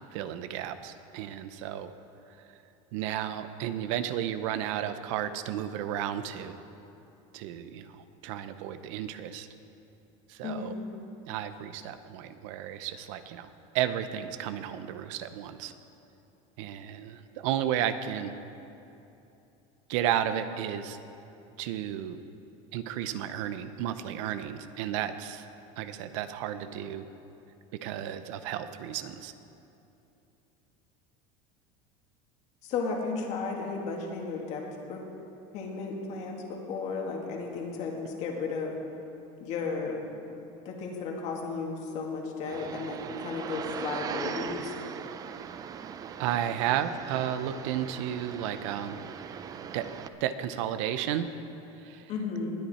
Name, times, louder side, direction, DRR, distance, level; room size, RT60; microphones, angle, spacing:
voice 1, 0.1-1.9 2.9-6.6 7.3-9.5 10.3-10.7 11.3-15.7 16.6-18.4 19.9-21.0 21.6-22.2 22.7-25.4 25.8-27.0 27.8-29.3 46.2-49.0 49.7-49.9 50.2-51.3 51.8-52.1, right 10 dB, 75° right, 11 dB, 0.7 m, -33 dB
voice 2, 10.4-10.8 32.6-34.6 34.9-35.0 35.5-38.7 39.4-40.0 40.7-44.8 52.1-52.5, left 4 dB, 45° left, 0 dB, 2.1 m, -34 dB
sound 1, 42.4-50.1, right 7 dB, 25° right, 0.4 m, -39 dB
20.0 x 10.0 x 4.3 m, 2.8 s
cardioid pair, 160°, 16 cm